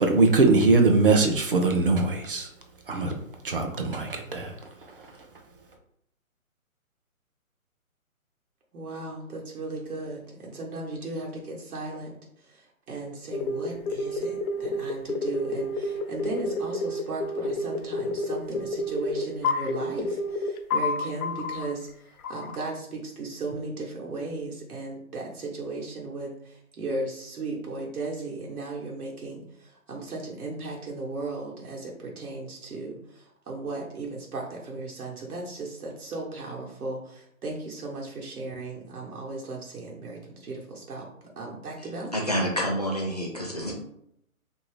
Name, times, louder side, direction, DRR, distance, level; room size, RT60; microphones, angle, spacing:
voice 1, 0.0-2.5 2.9-3.1 3.4-4.5, right 3 dB, 40° right, 3 dB, 0.4 m, -21 dB
voice 2, 8.7-12.1 12.5-21.9 22.3-42.1, right 3 dB, 80° right, -3 dB, 1.0 m, -36 dB
sound 1, 13.3-21.7 22.2-22.7, left 2 dB, 90° left, 0.5 m, -29 dB
voice 3, 41.8-43.8, equal, 30° left, -2 dB, 0.4 m, -29 dB
2.7 x 2.7 x 3.1 m, 0.74 s
hypercardioid pair, 155°, 43 cm